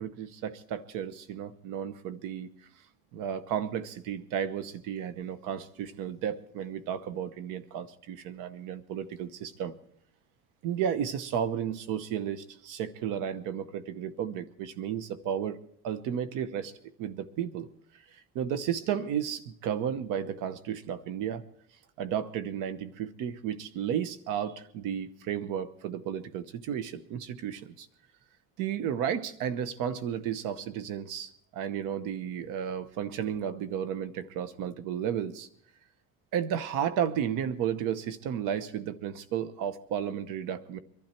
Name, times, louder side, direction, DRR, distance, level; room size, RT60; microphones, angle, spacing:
voice 1, 0.0-2.5 3.1-9.8 10.6-15.6 15.8-16.7 17.0-17.7 18.3-21.4 22.0-27.9 28.6-35.5 36.3-40.8, right 9 dB, 80° right, 14 dB, 1.1 m, -33 dB
24.0 x 12.0 x 4.4 m, 0.67 s
cardioid pair, 140°, 32 cm